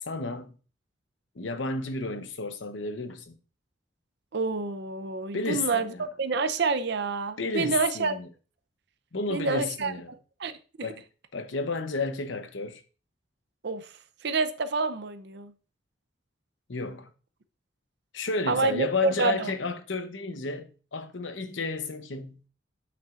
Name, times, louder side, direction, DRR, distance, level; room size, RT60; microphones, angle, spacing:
voice 1, 0.0-0.5 1.3-3.4 5.3-6.1 7.4-8.3 9.1-10.1 10.8-11.0 11.3-12.8 16.7-17.1 18.1-22.4, left 3 dB, 75° left, 0.8 m, -32 dB
voice 2, 4.3-8.2 9.3-9.9 10.4-10.5 10.8-10.9 13.6-13.9 14.2-15.5 18.5-19.5, right 4 dB, 60° right, 0.6 m, -28 dB
8.1 x 5.9 x 2.5 m
head